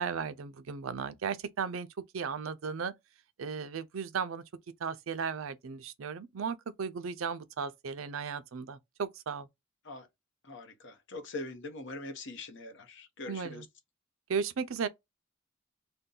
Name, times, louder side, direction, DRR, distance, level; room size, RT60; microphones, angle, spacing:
voice 1, 0.0-1.9 2.1-2.9 3.4-4.4 4.8-9.5 13.3-13.6 14.3-14.9, right 6 dB, 80° right, 0.5 m, -35 dB
voice 2, 10.4-13.7, left 2 dB, 65° left, 0.9 m, -42 dB
2.6 x 2.2 x 3.7 m
head